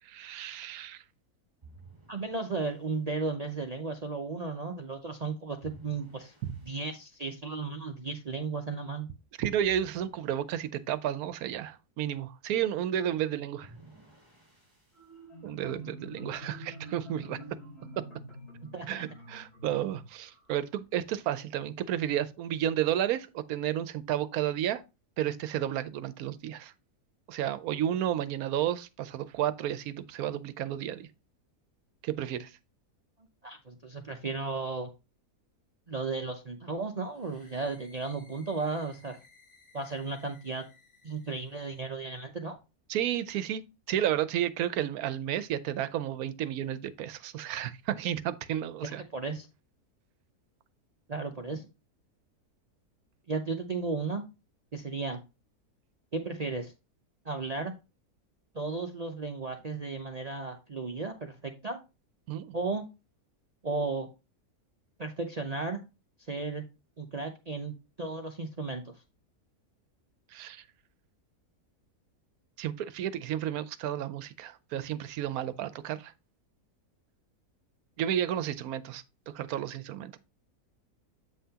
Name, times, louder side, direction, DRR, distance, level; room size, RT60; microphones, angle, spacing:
voice 1, 0.0-1.0 6.4-6.6 9.4-13.7 15.4-17.4 18.0-18.1 18.9-24.8 25.2-26.7 27.3-31.1 32.0-32.6 42.9-43.6 43.9-49.0 62.3-62.5 70.3-70.6 72.6-76.1 78.0-79.0 79.3-80.2, right 11 dB, 75° right, 1.0 m, -32 dB
sound 1, 1.6-3.0 5.6-7.1 9.6-11.0 13.6-15.2, right 4 dB, 25° right, 2.1 m, -56 dB
voice 2, 2.1-6.3 6.6-9.1 18.7-19.1 33.4-34.9 35.9-39.2 39.7-40.6 41.0-42.6 48.8-49.5 51.1-51.6 53.3-54.2 54.7-55.2 56.1-56.7 57.2-57.7 58.5-61.8 62.5-62.9 63.6-64.1 65.0-65.8 66.3-66.6 67.0-68.9, right 3 dB, 55° right, 0.4 m, -34 dB
Marimba xylophone, 14.9-20.5, equal, 80° left, 5.1 m, -47 dB
sound 2, 37.1-41.9, left 3 dB, 55° left, 2.5 m, -61 dB
8.3 x 5.7 x 2.8 m
omnidirectional pair, 1.6 m